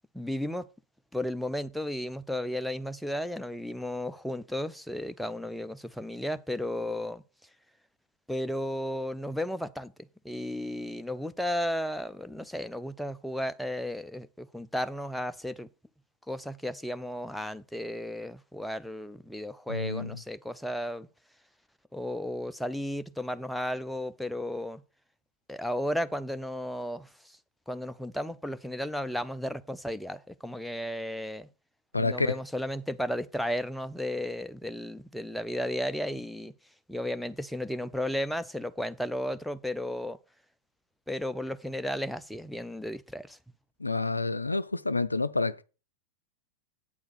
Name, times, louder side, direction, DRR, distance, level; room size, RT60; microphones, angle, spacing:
voice 1, 0.1-0.7 1.1-7.2 8.3-15.7 16.3-21.1 21.9-24.8 25.5-27.4 27.7-31.5 32.0-36.5 36.9-40.2 41.1-43.4, left 1 dB, ahead, 0.4 m, -34 dB
voice 2, 19.7-20.1 31.9-32.4 43.8-45.6, left 3 dB, 80° left, 0.4 m, -28 dB
8.3 x 4.6 x 6.7 m
figure-of-eight pair, 90°, 0 cm